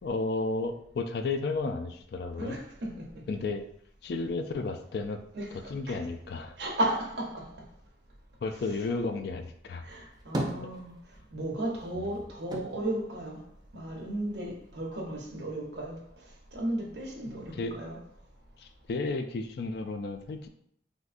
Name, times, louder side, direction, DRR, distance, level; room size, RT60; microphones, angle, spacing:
voice 1, 0.0-2.6 3.3-3.6 4.0-5.2 5.7-6.6 8.4-9.8 17.6-17.7 18.6-20.5, left 3 dB, 60° left, 0.3 m, -33 dB
voice 2, 2.4-3.1 5.3-6.0 6.6-7.5 8.6-8.8 9.8-10.9 11.3-13.4 13.7-16.0 16.5-18.0, right 1 dB, 70° right, 0.8 m, -34 dB
sound 1, 9.9-11.4 11.7-14.1 14.4-15.3, right 1 dB, 20° right, 0.4 m, -38 dB
3.5 x 2.6 x 2.4 m
head